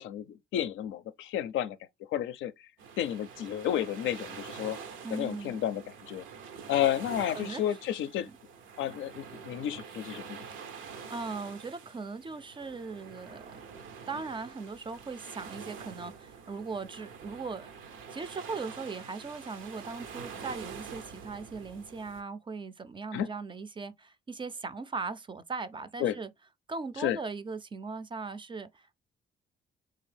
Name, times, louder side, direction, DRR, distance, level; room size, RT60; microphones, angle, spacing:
voice 1, 0.0-1.8 2.1-2.5 3.0-4.8 5.1-6.2 6.7-8.3 8.8-10.4 23.1-23.3 26.0-26.2 27.0-27.2, left 11 dB, 80° left, 0.5 m, -31 dB
sound 1, 2.8-22.2, right 6 dB, 90° right, 0.7 m, -46 dB
voice 2, 5.0-5.6 7.3-7.8 8.2-8.4 11.1-13.6 14.1-26.3 26.7-28.9, right 4 dB, 25° right, 0.4 m, -39 dB
3.7 x 2.7 x 3.2 m
cardioid pair, 90°, 20 cm